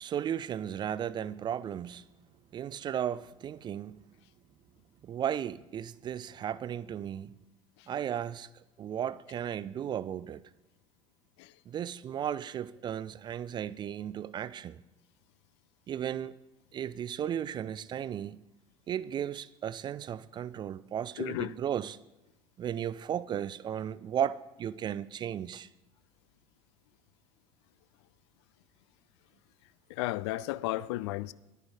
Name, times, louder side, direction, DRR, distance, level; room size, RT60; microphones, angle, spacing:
voice 1, 0.0-2.1 2.5-4.0 5.0-7.3 7.9-8.5 8.8-10.4 11.7-14.8 15.9-16.3 16.7-18.4 18.9-22.0 22.6-25.7, right 9 dB, 25° right, 0.4 m, -35 dB
voice 2, 21.2-21.5 29.9-31.3, left 17 dB, 55° left, 0.4 m, -33 dB
11.5 x 9.9 x 5.0 m
figure-of-eight pair, 70°, 17 cm